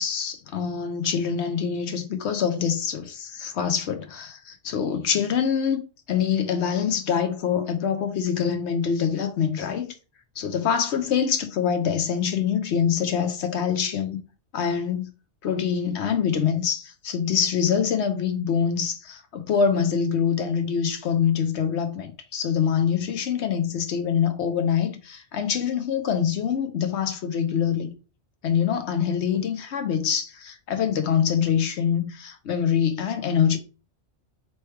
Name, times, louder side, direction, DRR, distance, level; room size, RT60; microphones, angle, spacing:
voice 1, 0.0-5.8 6.1-10.0 10.4-14.2 14.5-15.1 15.4-27.9 28.4-33.6, left 7 dB, 70° left, 0.9 m, -25 dB
3.2 x 3.1 x 4.4 m
omnidirectional pair, 1.2 m